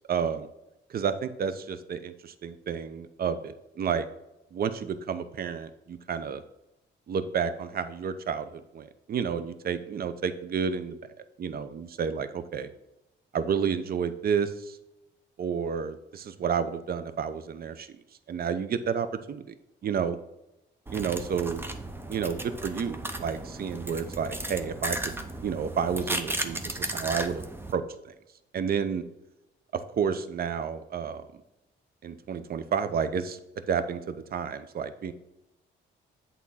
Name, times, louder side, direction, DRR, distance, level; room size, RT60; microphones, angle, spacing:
voice 1, 0.1-0.5 0.9-4.1 4.5-6.4 7.1-11.0 11.4-12.7 13.3-14.8 15.4-17.9 18.3-19.4 19.8-20.2 20.9-21.6 22.1-25.0 25.4-27.4 27.7-28.1 28.5-29.0 29.7-31.3 32.0-33.4 33.7-35.1, right 7 dB, 50° right, 12 dB, 0.7 m, -30 dB
sound 1, 20.9-27.7, right 1 dB, 10° right, 0.8 m, -35 dB
8.4 x 3.7 x 5.6 m, 0.91 s
cardioid pair, 90°, 20 cm